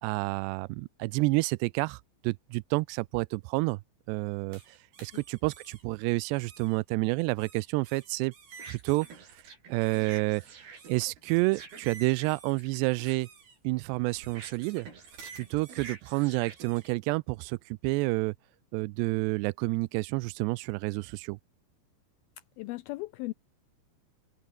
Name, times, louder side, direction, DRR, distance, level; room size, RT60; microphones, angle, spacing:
voice 1, 0.0-3.8 4.1-8.3 8.7-9.1 9.7-13.3 13.6-14.9 15.3-18.3 18.7-21.4, right 24 dB, 85° right, 2.7 m, -29 dB
sound 1, 4.5-5.8 6.4-6.8 7.4-17.0, right 5 dB, 65° right, 7.6 m, -48 dB
voice 2, 22.6-23.3, left 20 dB, 85° left, 2.1 m, -37 dB
omnidirectional pair, 4.8 m